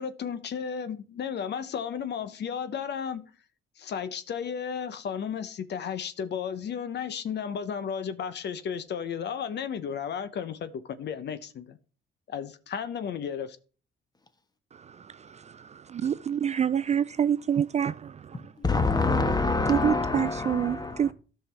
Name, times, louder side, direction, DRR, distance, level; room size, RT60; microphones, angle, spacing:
voice 1, 0.0-3.3 3.8-11.8 12.3-13.6, left 7 dB, 60° left, 0.8 m, -34 dB
voice 2, 14.7-18.5 19.7-21.1, right 8 dB, 35° right, 0.4 m, -28 dB
voice 3, 18.6-21.0, left 3 dB, 20° left, 1.3 m, -26 dB
13.0 x 5.7 x 3.3 m
cardioid pair, 90°, 20 cm